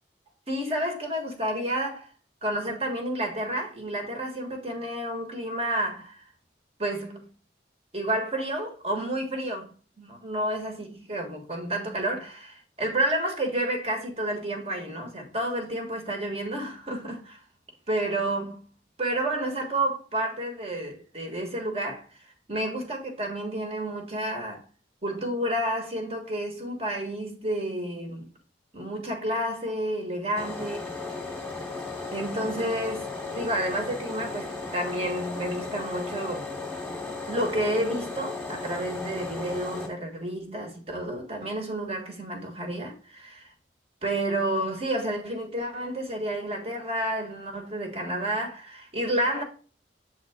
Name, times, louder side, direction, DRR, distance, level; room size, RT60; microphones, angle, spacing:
voice 1, 0.5-2.1 2.4-6.2 6.8-7.3 7.9-17.4 17.9-18.6 19.0-22.2 22.5-24.6 25.0-28.3 28.7-30.9 32.1-36.5 37.3-43.5 44.0-49.4, right 1 dB, 35° right, 1.6 m, -30 dB
sound 1, 30.4-39.9, left 3 dB, 5° left, 1.5 m, -35 dB
7.6 x 3.8 x 3.6 m
head